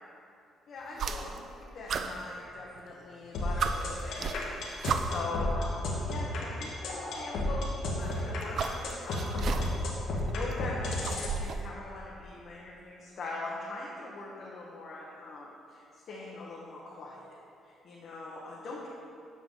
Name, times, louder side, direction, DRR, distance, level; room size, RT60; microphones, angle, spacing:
voice 1, 0.7-17.3 17.6-18.9, left 2 dB, 60° left, -5 dB, 1.0 m, -42 dB
sound 1, 0.9-1.5 1.9-2.9 3.3-3.4 3.6-5.4 6.4-6.5 7.9-9.9 10.3-11.7, right 6 dB, 60° right, 0.3 m, -35 dB
sound 2, 3.3-11.3, left 2 dB, 80° left, 1.2 m, -32 dB
7.4 x 5.7 x 3.8 m, 2.5 s
cardioid pair, 90°, 0 cm